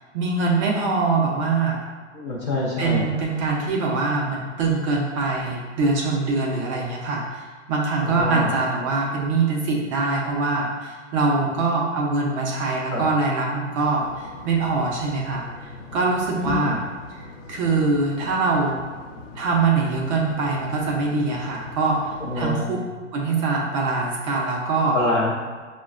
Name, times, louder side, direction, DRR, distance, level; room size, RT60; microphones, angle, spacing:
voice 1, 0.1-1.8 2.8-7.4 7.7-15.5 15.9-16.8 17.5-18.8 19.3-22.0 22.4-22.8 23.1-25.0, right 3 dB, 25° right, -2 dB, 0.5 m, -23 dB
voice 2, 2.1-3.1 6.7-6.8 8.0-8.5 12.9-13.1 16.4-16.8 22.2-22.9 24.9-25.3, left 2 dB, 25° left, -6 dB, 0.4 m, -26 dB
sound 1, 14.0-22.5, left 2 dB, 75° left, 0.7 m, -42 dB
5.1 x 2.1 x 2.4 m, 1.5 s
hypercardioid pair, 135°, 37 cm